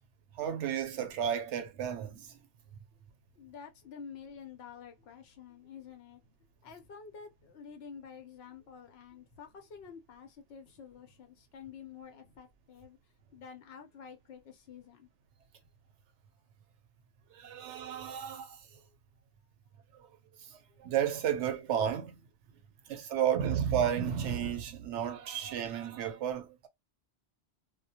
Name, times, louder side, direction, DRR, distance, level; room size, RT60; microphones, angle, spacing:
voice 1, 0.3-2.4 17.3-18.7 19.9-20.1 20.4-22.2 22.9-26.7, right 9 dB, 85° right, 0.9 m, -33 dB
voice 2, 3.3-6.4 6.6-13.0 13.3-15.1 18.7-18.9 20.7-20.8, left 6 dB, 70° left, 0.9 m, -49 dB
2.2 x 2.1 x 2.7 m
omnidirectional pair, 1.2 m